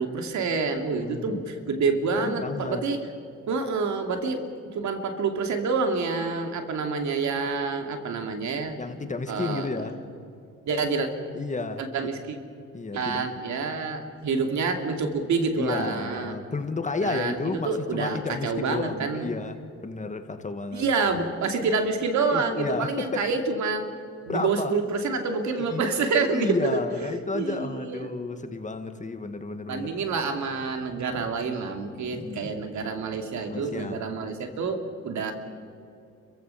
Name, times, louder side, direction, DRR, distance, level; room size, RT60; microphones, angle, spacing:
voice 1, 0.0-3.0 3.5-4.4 4.7-8.7 9.3-9.7 10.7-11.1 11.8-12.4 12.9-16.3 17.0-17.4 17.6-19.3 20.7-23.9 24.3-26.6 27.0-28.1 29.7-35.3, right 4 dB, 70° right, 5 dB, 2.6 m, -27 dB
voice 2, 0.9-1.4 2.2-2.9 8.8-10.0 11.3-11.9 12.7-13.3 15.6-20.9 22.3-23.3 24.3-24.8 25.6-25.8 26.3-29.9 32.1-32.5 33.5-34.1, left 3 dB, 25° left, 7 dB, 1.8 m, -32 dB
30.0 x 15.5 x 5.8 m, 2.6 s
cardioid pair, 90°, 30 cm